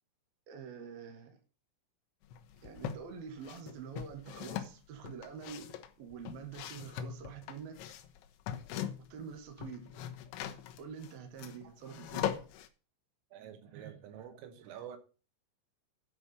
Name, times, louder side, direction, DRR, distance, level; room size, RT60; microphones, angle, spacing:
voice 1, 0.5-1.4 2.6-5.7 6.0-7.8 9.1-10.2 10.8-12.3 13.6-14.3 14.6-14.8, right 7 dB, 60° right, 2.8 m, -47 dB
sound 1, 2.3-3.0 3.4-9.2 9.5-12.7, left 10 dB, 75° left, 2.9 m, -40 dB
voice 2, 13.3-15.0, right 9 dB, 85° right, 3.8 m, -48 dB
9.6 x 4.9 x 6.8 m
omnidirectional pair, 5.8 m